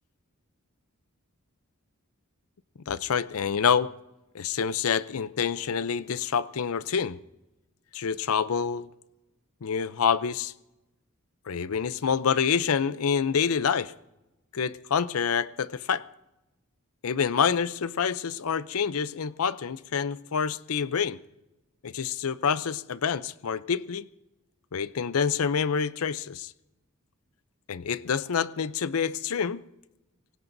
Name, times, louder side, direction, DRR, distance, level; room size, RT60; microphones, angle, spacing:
voice 1, 2.9-3.9 4.3-7.2 7.9-8.9 9.6-10.5 11.5-13.9 14.5-16.0 17.0-21.2 21.8-24.1 24.7-26.5 27.7-29.6, left 6 dB, 75° left, 16 dB, 0.5 m, -27 dB
25.5 x 18.5 x 2.7 m, 0.96 s
head